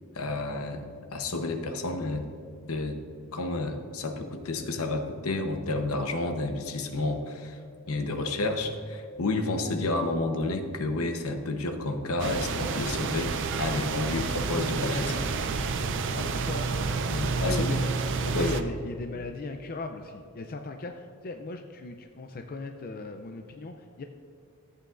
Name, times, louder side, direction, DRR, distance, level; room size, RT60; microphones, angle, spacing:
voice 1, 0.1-2.3 2.7-3.0 3.3-7.6 7.9-15.2 17.1-17.7 18.2-18.5, left 2 dB, 70° left, 6 dB, 0.9 m, -30 dB
sound 1, 12.2-18.6, right 4 dB, 55° right, 0.5 m, -29 dB
voice 2, 16.1-17.1 17.3-17.9 18.2-24.0, left 3 dB, 40° left, 4 dB, 0.4 m, -37 dB
14.0 x 8.3 x 2.5 m, 2.2 s
head